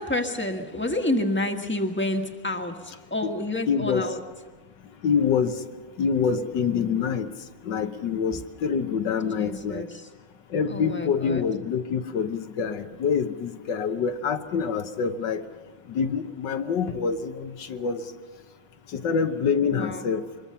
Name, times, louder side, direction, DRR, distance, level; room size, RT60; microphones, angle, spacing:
voice 1, 0.0-4.2 9.4-9.9 10.7-11.5 19.7-20.0, left 1 dB, 5° left, 4 dB, 1.4 m, -29 dB
voice 2, 3.7-4.1 5.0-5.5 6.0-7.3 7.6-9.8 10.5-15.4 15.9-18.0 18.9-20.2, left 6 dB, 70° left, 8 dB, 1.7 m, -26 dB
25.5 x 21.5 x 5.7 m, 1.4 s
omnidirectional pair, 2.1 m